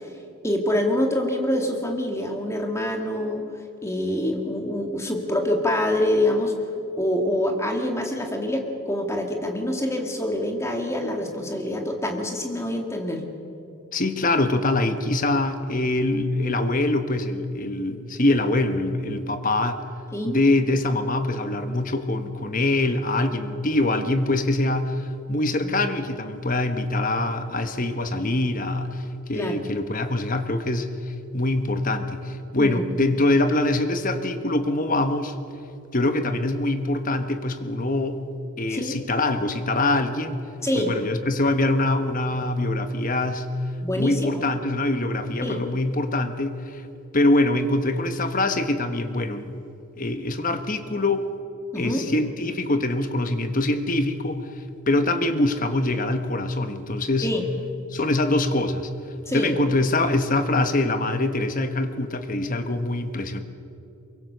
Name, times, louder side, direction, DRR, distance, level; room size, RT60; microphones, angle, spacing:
voice 1, 0.4-3.4 3.8-6.6 7.0-13.2 20.1-20.4 25.6-25.7 29.3-29.6 32.6-32.8 38.7-38.9 40.6-40.9 43.8-44.3 45.4-45.6 51.7-52.1 57.2-57.4 59.3-59.6, left 1 dB, 10° left, 3 dB, 2.1 m, -25 dB
voice 2, 13.9-19.8 20.2-30.9 31.3-35.3 35.9-38.2 38.6-40.4 40.7-43.5 44.0-46.8 47.1-49.6 50.0-51.3 51.8-54.4 54.9-57.3 57.9-58.9 59.3-63.4, left 2 dB, 35° left, 9 dB, 1.2 m, -24 dB
23.5 x 23.0 x 6.8 m, 2.7 s
head